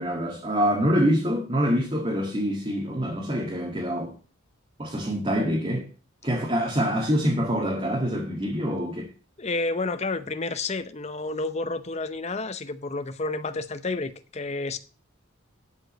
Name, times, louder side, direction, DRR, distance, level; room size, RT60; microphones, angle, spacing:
voice 1, 0.0-4.1 4.8-5.9 6.2-9.1, equal, 25° right, 1.9 m, -25 dB
voice 2, 9.4-14.8, left 3 dB, 30° left, 0.7 m, -30 dB
12.0 x 5.3 x 6.3 m
head